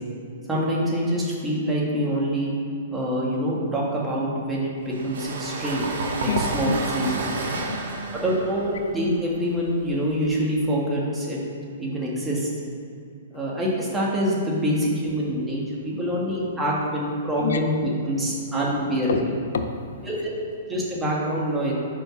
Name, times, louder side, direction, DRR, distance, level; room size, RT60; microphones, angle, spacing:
voice 1, 0.5-2.5 2.9-5.9 6.2-7.3 8.1-11.4 11.8-12.5 13.3-19.2 20.1-21.7, equal, 10° right, -5 dB, 1.7 m, -25 dB
sound 1, 4.9-10.4, right 3 dB, 65° right, 1.1 m, -31 dB
voice 2, 6.2-7.2 7.5-8.7 15.2-15.3 15.9-16.1 17.4-17.6 18.5-18.6 19.1-19.2 19.5-20.2 20.7-20.8, left 5 dB, 75° left, 7 dB, 0.5 m, -31 dB
5.0 x 4.9 x 5.9 m, 2.5 s
hypercardioid pair, 125°, 0 cm